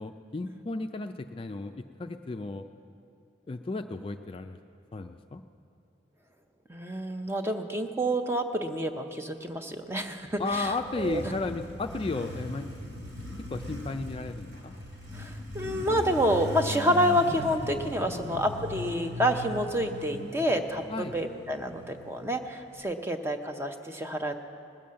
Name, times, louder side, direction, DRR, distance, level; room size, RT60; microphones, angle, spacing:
voice 1, 0.0-2.7 3.5-4.6 4.9-5.4 10.4-12.7 13.5-14.7 18.1-18.5 20.9-21.2, left 3 dB, 30° left, 7 dB, 0.3 m, -34 dB
voice 2, 6.7-10.7 11.0-11.2 15.1-20.8 21.1-24.4, equal, 15° right, 6 dB, 0.6 m, -28 dB
Motorcycle, 10.1-22.8, left 1 dB, 75° right, 3.6 m, -39 dB
19.5 x 7.1 x 7.5 m, 2.5 s
head